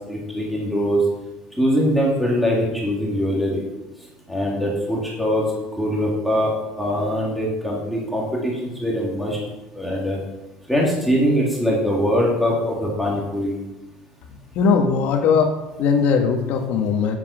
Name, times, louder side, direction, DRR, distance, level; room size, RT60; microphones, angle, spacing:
voice 1, 0.1-1.0 1.6-3.6 4.3-5.5 5.8-6.5 6.8-9.4 9.8-10.2 10.7-13.6, equal, ahead, -4 dB, 2.2 m, -22 dB
voice 2, 14.3-17.2, left 5 dB, 60° left, 4 dB, 1.6 m, -20 dB
8.3 x 7.3 x 6.3 m, 1.0 s
cardioid pair, 145°, 3 cm